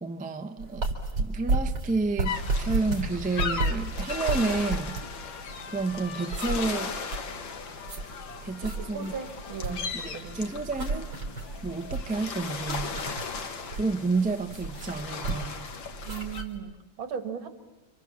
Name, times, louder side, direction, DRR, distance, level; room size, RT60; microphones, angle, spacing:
voice 1, 0.0-0.9 1.2-5.0 5.7-7.0 8.4-9.1 9.7-11.1 11.6-13.0 13.7-15.7, right 3 dB, 10° right, 0.5 m, -30 dB
sound 1, 0.6-16.6, right 3 dB, 60° right, 4.4 m, -32 dB
sound 2, 2.2-16.4, left 5 dB, 70° left, 2.3 m, -37 dB
Trumpet, 3.7-11.4, left 6 dB, 85° left, 2.6 m, -49 dB
voice 2, 8.6-10.4 16.1-17.5, right 7 dB, 80° right, 2.7 m, -37 dB
29.5 x 26.5 x 7.4 m
omnidirectional pair, 2.2 m